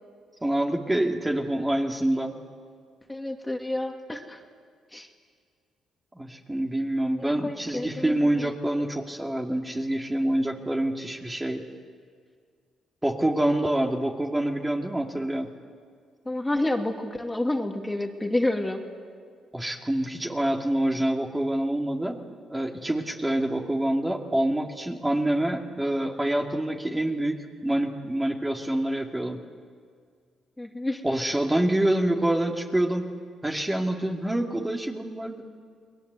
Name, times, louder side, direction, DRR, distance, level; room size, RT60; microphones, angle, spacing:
voice 1, 0.4-2.4 6.1-11.6 13.0-15.5 19.5-22.2 22.5-29.4 31.0-33.1 33.4-35.4, right 1 dB, 10° right, 1 dB, 2.3 m, -26 dB
voice 2, 3.1-4.4 4.9-5.1 7.4-8.5 16.3-18.8 30.6-31.0, left 1 dB, 10° left, 3 dB, 2.4 m, -29 dB
30.0 x 21.0 x 8.1 m, 2.1 s
cardioid pair, 90°, 0 cm